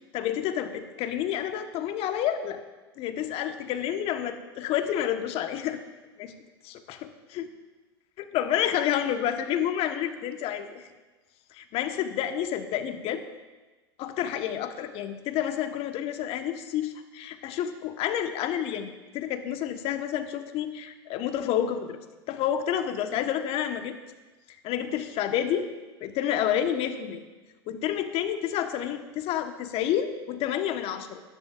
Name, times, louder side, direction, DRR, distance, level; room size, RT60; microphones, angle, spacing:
voice 1, 0.1-2.6 3.0-5.8 6.2-6.3 6.6-7.5 8.2-10.8 11.5-13.2 14.0-22.0 22.3-24.0 24.6-25.7 26.0-27.2 27.7-31.2, left 10 dB, 45° left, 7 dB, 1.3 m, -29 dB
23.0 x 11.0 x 2.6 m, 1.2 s
hypercardioid pair, 90°, 14 cm